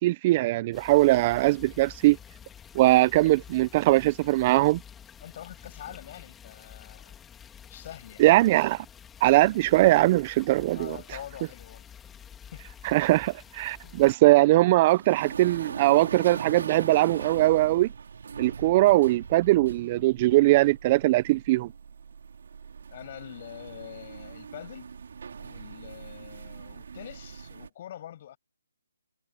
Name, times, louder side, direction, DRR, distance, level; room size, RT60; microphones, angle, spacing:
voice 1, 0.0-2.2 2.7-4.8 8.2-8.8 9.2-11.0 12.8-17.9 18.4-21.7, right 18 dB, 30° right, 1.2 m, -21 dB
sound 1, 0.7-14.2, left 8 dB, 10° left, 2.6 m, -49 dB
voice 2, 5.2-7.2 7.6-8.2 9.3-9.5 10.7-11.9 12.5-12.7 13.8-14.1 22.9-24.9 25.4-28.4, left 11 dB, 40° left, 7.5 m, -45 dB
sound 2, 13.7-27.7, right 6 dB, 60° right, 3.9 m, -41 dB
figure-of-eight pair, 150°, 0 cm